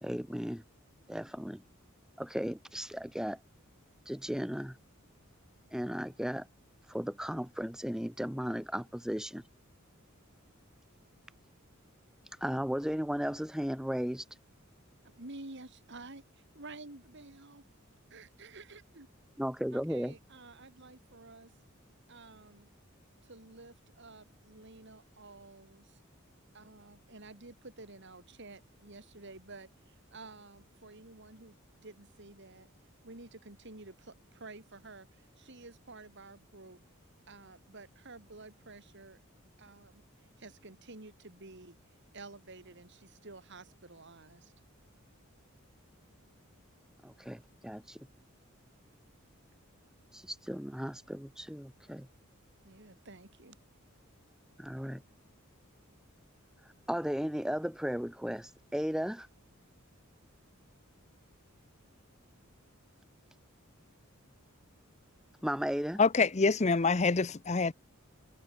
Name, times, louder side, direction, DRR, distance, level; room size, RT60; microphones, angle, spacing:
voice 1, 0.0-0.6 1.1-1.6 2.2-3.4 4.1-4.8 5.7-6.5 6.9-9.4 12.4-14.2 19.4-20.1 47.0-48.1 50.1-52.1 54.6-55.0 56.9-59.3 65.4-66.0, equal, 5° right, 0.9 m, -35 dB
voice 2, 15.0-17.6 18.1-19.1 19.7-21.5 22.1-22.7 23.2-26.0 26.5-32.7 33.0-36.8 37.3-39.2 39.6-40.0 40.4-41.8 42.1-44.5 52.6-53.6, right 3 dB, 55° right, 2.6 m, -51 dB
voice 3, 66.0-67.7, left 4 dB, 30° left, 0.7 m, -26 dB
head